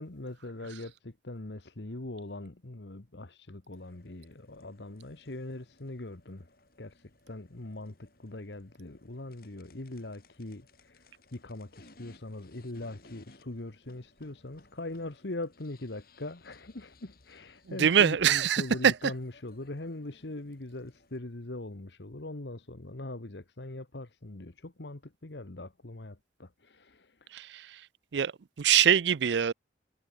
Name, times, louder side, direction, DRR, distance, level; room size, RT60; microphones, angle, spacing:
voice 1, 0.0-6.5 6.8-27.3, left 2 dB, 70° left, 1.4 m, -41 dB
sound 1, 3.7-21.2, left 2 dB, 55° left, 4.4 m, -61 dB
voice 2, 17.7-19.0 27.3-27.9 28.1-28.3 28.6-29.5, right 8 dB, 75° right, 0.5 m, -24 dB
head